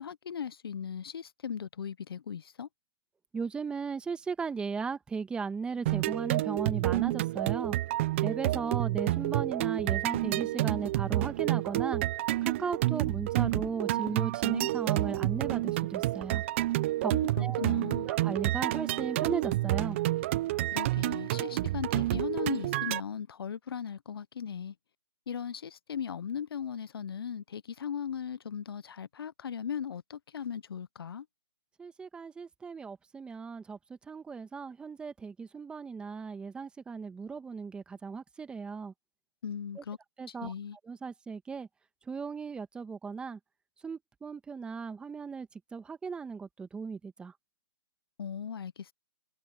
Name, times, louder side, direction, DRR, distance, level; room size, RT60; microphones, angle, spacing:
voice 1, 0.0-2.7 17.1-18.1 20.7-24.7 25.3-31.3 39.4-40.0 40.3-40.8 48.2-48.9, left 7 dB, 65° left, 0.7 m, -38 dB
voice 2, 3.3-7.8 8.2-12.0 12.4-16.4 17.0-17.1 17.4-17.6 18.0-20.0 31.8-38.9 39.8-39.9 40.2-40.5 40.8-41.7 42.0-43.4 43.8-47.4, right 5 dB, 5° right, 1.4 m, -36 dB
sound 1, 5.9-23.0, right 16 dB, 30° right, 0.5 m, -29 dB
hypercardioid pair, 150°, 14 cm